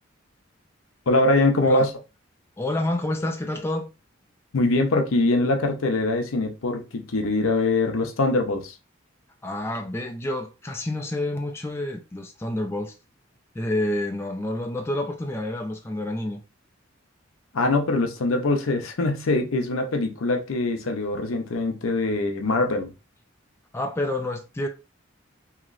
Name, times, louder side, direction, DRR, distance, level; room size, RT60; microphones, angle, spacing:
voice 1, 1.1-1.9 4.5-8.7 17.5-22.9, left 2 dB, 85° left, 0.6 m, -23 dB
voice 2, 2.6-3.9 9.4-13.0 13.5-16.4 23.7-24.7, left 1 dB, 10° left, 0.3 m, -28 dB
3.0 x 2.8 x 2.5 m
head